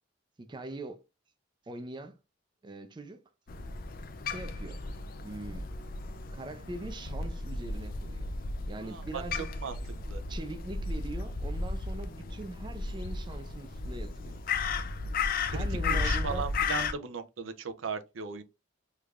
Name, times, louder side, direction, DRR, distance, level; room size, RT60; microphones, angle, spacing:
voice 1, 0.4-1.0 1.7-2.2 2.6-3.2 4.2-4.9 5.2-5.7 6.3-8.3 8.7-9.5 10.3-14.4 15.5-16.5, right 2 dB, 25° right, 0.4 m, -42 dB
Crow, 3.5-16.9, left 4 dB, 50° left, 0.4 m, -34 dB
voice 2, 8.8-9.2 9.6-9.7 10.1-10.2 15.5-18.4, right 5 dB, 90° right, 0.5 m, -37 dB
3.3 x 3.2 x 2.4 m
head